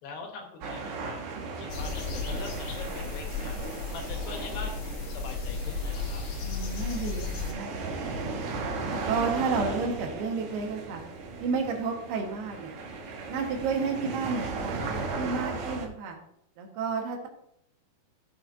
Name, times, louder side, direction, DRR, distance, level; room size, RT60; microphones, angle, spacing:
voice 1, 0.0-1.2 1.6-3.6 3.9-6.2, left 4 dB, 75° left, 3 dB, 3.1 m, -42 dB
sound 1, 0.6-15.9, right 3 dB, 60° right, 2.2 m, -36 dB
sound 2, 1.7-7.5, left 4 dB, 60° left, 2.3 m, -34 dB
voice 2, 6.4-8.2 8.9-11.0 11.4-12.7 13.3-16.2 16.6-17.3, right 5 dB, 85° right, 1 dB, 3.5 m, -31 dB
16.0 x 6.0 x 2.7 m, 0.75 s
omnidirectional pair, 4.4 m